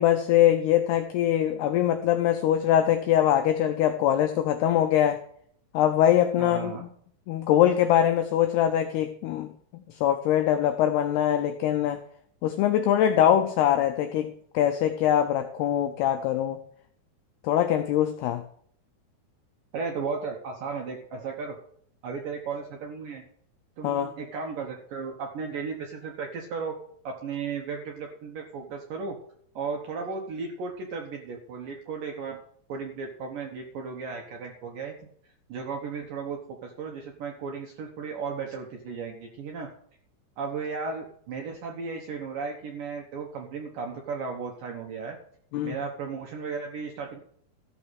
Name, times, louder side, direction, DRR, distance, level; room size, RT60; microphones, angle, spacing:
voice 1, 0.0-5.2 5.7-6.9 7.3-9.5 9.7-12.0 12.4-16.6 17.4-18.4 23.8-24.1 45.5-45.8, left 11 dB, 90° left, 7 dB, 2.3 m, -23 dB
voice 2, 6.4-6.8 19.7-21.6 22.0-23.2 23.8-26.8 27.0-29.2 29.6-32.4 32.7-39.7 40.4-45.2 45.6-47.2, right 5 dB, 70° right, 1 dB, 2.1 m, -35 dB
14.0 x 6.3 x 6.4 m, 0.64 s
omnidirectional pair, 5.5 m